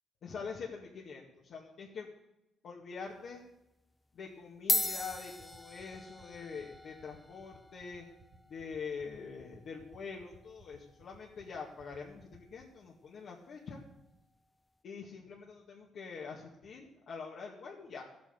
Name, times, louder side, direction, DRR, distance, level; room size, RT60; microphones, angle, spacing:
voice 1, 0.2-2.1 2.6-3.4 4.1-8.1 8.5-13.8 14.8-18.0, left 5 dB, 65° left, -3 dB, 2.0 m, -44 dB
sound 1, 3.1-3.3 4.2-4.3 4.5-13.2, left 1 dB, 10° left, 0.4 m, -40 dB
sound 2, 5.0-12.6, right 3 dB, 45° right, 2.4 m, -58 dB
13.5 x 9.0 x 7.0 m, 0.88 s
cardioid pair, 90°, 0 cm